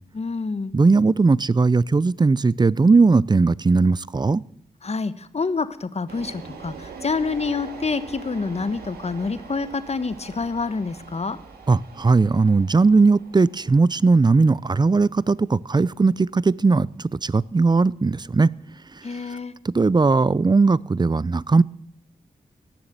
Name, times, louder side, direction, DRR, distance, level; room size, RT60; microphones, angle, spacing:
voice 1, 0.1-0.7 4.8-11.4 19.0-19.5, left 4 dB, 45° left, 13 dB, 1.2 m, -27 dB
voice 2, 0.7-4.4 11.7-18.5 19.6-21.6, right 4 dB, 25° right, 22 dB, 0.5 m, -18 dB
sound 1, 6.1-19.2, right 5 dB, 90° right, 2.1 m, -43 dB
17.5 x 7.1 x 9.3 m, 0.66 s
supercardioid pair, 40°, 16 cm